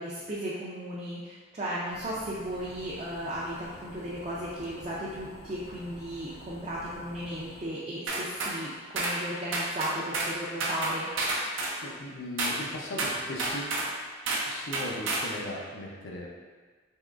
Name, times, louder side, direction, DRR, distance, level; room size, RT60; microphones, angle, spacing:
voice 1, 0.0-11.1, right 1 dB, 30° right, -7 dB, 0.4 m, -35 dB
sound 1, 1.9-7.7, left 1 dB, 35° left, 0.3 m, -49 dB
sound 2, 8.1-8.6 9.0-9.2 9.5-10.3 10.6-11.8 12.4-12.6 13.0-13.9 14.3-14.5 14.7-15.3, right 2 dB, 85° right, 0.6 m, -30 dB
voice 2, 11.8-13.7 14.5-16.3, left 1 dB, 85° left, -1 dB, 0.6 m, -38 dB
3.6 x 3.0 x 2.4 m, 1.4 s
head